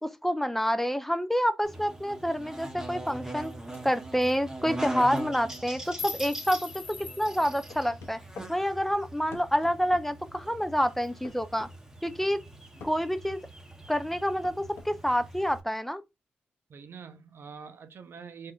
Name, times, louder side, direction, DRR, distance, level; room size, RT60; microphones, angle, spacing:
voice 1, 0.0-3.5 3.8-8.2 8.5-11.7 12.0-12.4 12.8-13.4 13.9-16.0, equal, 5° left, 0.4 m, -28 dB
Buzz, 1.6-15.6, right 2 dB, 15° right, 0.9 m, -42 dB
sound 1, 3.1-3.2 3.4-3.5 3.7-3.9 4.2-4.3 5.0-5.2 5.5-7.8, left 4 dB, 40° left, 0.9 m, -41 dB
sound 2, 7.7-8.5 9.3-10.1 11.2-11.7 12.8-13.0 14.1-14.9, left 5 dB, 70° left, 0.5 m, -46 dB
voice 2, 16.7-18.5, right 6 dB, 60° right, 0.5 m, -45 dB
3.4 x 2.6 x 2.3 m
supercardioid pair, 45°, 4 cm